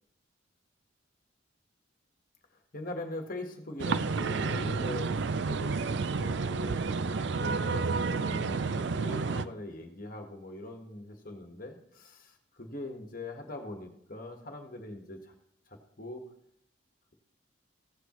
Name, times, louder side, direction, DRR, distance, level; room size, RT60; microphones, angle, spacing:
voice 1, 2.7-6.9 7.4-15.3 15.7-16.2, left 1 dB, 45° left, 3 dB, 1.5 m, -42 dB
sound 1, 3.8-9.4, right 4 dB, 65° right, 0.4 m, -30 dB
15.5 x 8.1 x 3.1 m, 0.77 s
head